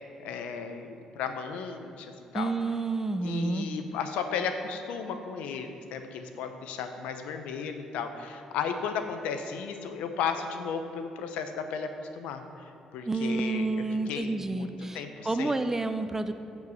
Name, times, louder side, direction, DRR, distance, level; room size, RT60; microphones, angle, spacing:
voice 1, 0.2-2.5 3.2-12.4 12.9-15.6, left 6 dB, 90° left, 7 dB, 0.7 m, -35 dB
voice 2, 2.3-3.7 13.0-16.3, right 3 dB, 20° right, 9 dB, 0.6 m, -29 dB
9.3 x 5.3 x 7.1 m, 2.9 s
cardioid pair, 80°, 2 cm